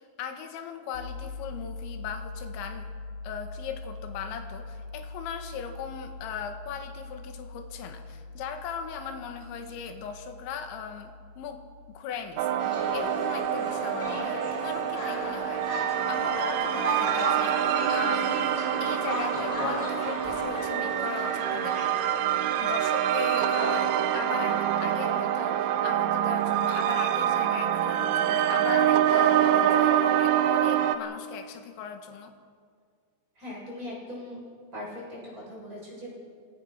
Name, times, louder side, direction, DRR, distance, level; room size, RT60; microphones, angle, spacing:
voice 1, 0.0-2.9 3.2-15.6 16.1-18.4 18.8-21.8 22.6-32.3, left 7 dB, 80° left, 6 dB, 3.8 m, -38 dB
sound 1, 0.9-12.0, left 3 dB, 60° left, 4.8 m, -42 dB
sound 2, 12.4-31.0, right 10 dB, 85° right, 3.3 m, -26 dB
sound 3, 12.6-22.5, equal, 10° left, 3.1 m, -35 dB
voice 2, 33.4-34.4 34.7-36.1, left 1 dB, 20° right, -4 dB, 6.9 m, -40 dB
27.0 x 17.5 x 5.9 m, 2.1 s
omnidirectional pair, 5.3 m